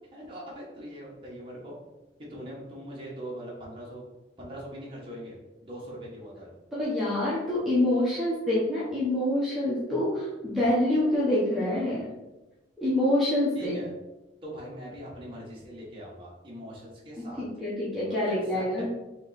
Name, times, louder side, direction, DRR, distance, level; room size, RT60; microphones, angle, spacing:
voice 1, 0.1-1.8 2.3-4.0 4.4-5.4 5.6-6.5 13.5-13.9 14.4-17.4 18.1-18.2 18.5-18.6, right 1 dB, 25° right, -5 dB, 1.2 m, -41 dB
voice 2, 6.7-12.1 12.8-13.8 17.2-18.9, left 1 dB, ahead, -9 dB, 0.8 m, -26 dB
3.6 x 3.0 x 4.0 m, 1.0 s
head